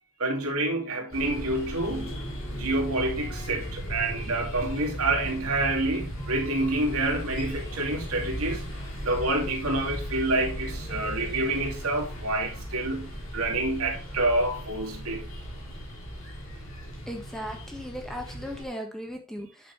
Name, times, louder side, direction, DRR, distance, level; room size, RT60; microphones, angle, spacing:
voice 1, 0.2-2.2 2.5-8.7 9.0-15.3, right 2 dB, 85° right, 2.6 m, -28 dB
sound 1, 1.1-18.6, equal, 65° left, 3.7 m, -37 dB
voice 2, 17.1-19.7, equal, ahead, 1.6 m, -37 dB
8.6 x 6.7 x 3.4 m
head